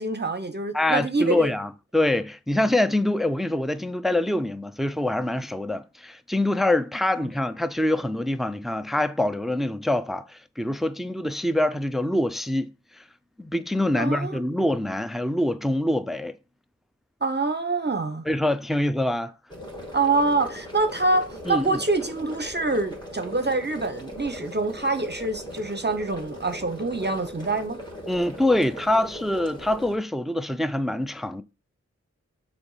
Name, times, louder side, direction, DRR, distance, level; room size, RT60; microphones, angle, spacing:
voice 1, 0.0-1.5 13.9-14.4 17.2-18.2 19.9-27.8, right 3 dB, 35° right, 0.8 m, -25 dB
voice 2, 0.7-12.7 13.4-16.4 18.3-19.3 21.5-21.8 28.1-31.4, left 1 dB, ahead, 0.5 m, -25 dB
sound 1, 19.5-30.0, equal, 15° left, 2.5 m, -39 dB
6.8 x 4.6 x 5.6 m
wide cardioid pair, 60°, 29 cm